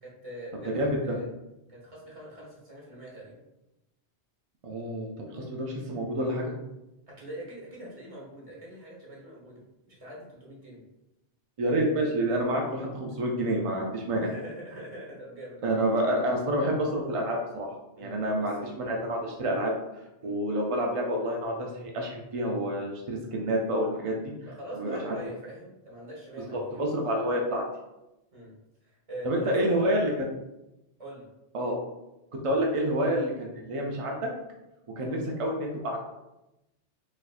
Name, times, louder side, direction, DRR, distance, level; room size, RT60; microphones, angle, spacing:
voice 1, 0.0-1.3 1.7-3.4 7.1-10.8 14.2-15.6 15.9-16.0 18.0-18.7 20.2-20.4 24.4-27.0 28.3-28.5 28.8-30.1 31.0-31.3 32.8-32.9 35.0-35.2, equal, 30° right, -5 dB, 1.0 m, -43 dB
voice 2, 4.6-6.5 11.6-14.3 15.6-19.7 20.2-24.3 24.7-25.2 26.5-27.6 29.2-30.1 31.5-31.7 32.4-34.3 35.0-36.0, right 1 dB, 60° right, 0 dB, 0.3 m, -28 dB
4.1 x 2.6 x 2.4 m, 0.94 s
omnidirectional pair, 1.2 m